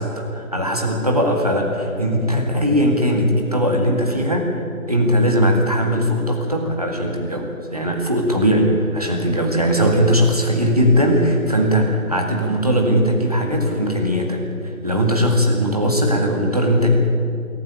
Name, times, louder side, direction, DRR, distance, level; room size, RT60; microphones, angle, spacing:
voice 1, 0.0-4.6 4.9-14.4 14.8-17.0, equal, 25° right, 2 dB, 2.0 m, -19 dB
23.5 x 14.0 x 8.7 m, 2.5 s
figure-of-eight pair, 175°, 44 cm